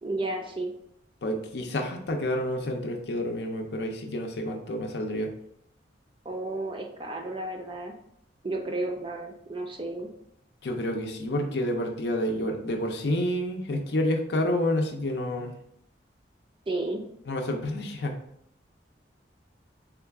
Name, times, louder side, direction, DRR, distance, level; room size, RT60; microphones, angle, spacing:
voice 1, 0.0-0.7 6.2-8.0 8.4-10.1 16.7-17.0, right 2 dB, 25° right, 2 dB, 0.4 m, -32 dB
voice 2, 1.2-5.3 10.6-15.5 17.3-18.2, left 1 dB, 65° left, 3 dB, 0.5 m, -29 dB
3.7 x 2.3 x 3.4 m, 0.72 s
head